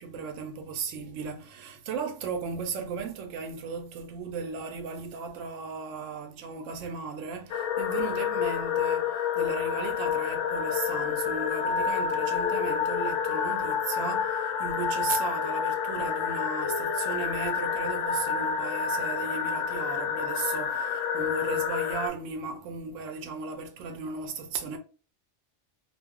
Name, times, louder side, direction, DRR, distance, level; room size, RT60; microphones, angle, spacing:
voice 1, 0.0-24.8, right 5 dB, 90° right, 0.9 m, -36 dB
sound 1, 7.5-22.1, left 7 dB, 80° left, 0.9 m, -29 dB
2.3 x 2.1 x 3.5 m
omnidirectional pair, 1.3 m